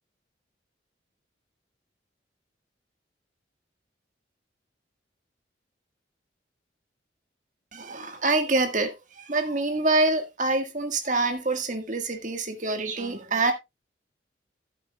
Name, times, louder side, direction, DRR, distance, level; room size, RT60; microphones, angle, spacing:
voice 1, 7.7-13.5, right 2 dB, 40° right, 1.6 m, -26 dB
14.5 x 8.2 x 2.3 m
head